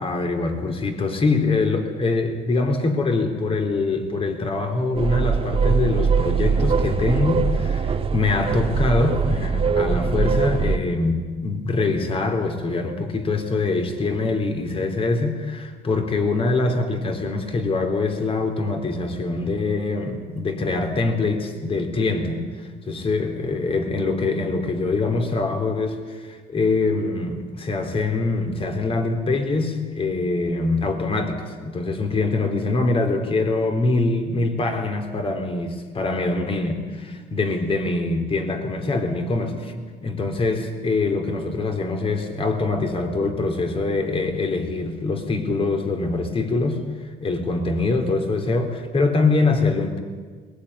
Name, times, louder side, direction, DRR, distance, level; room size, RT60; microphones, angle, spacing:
voice 1, 0.0-46.8 47.2-50.0, left 3 dB, 35° left, 6 dB, 3.6 m, -24 dB
sound 1, 5.0-10.8, right 5 dB, 35° right, 1.6 m, -22 dB
22.0 x 20.0 x 10.0 m, 1.5 s
cardioid pair, 110°, 17 cm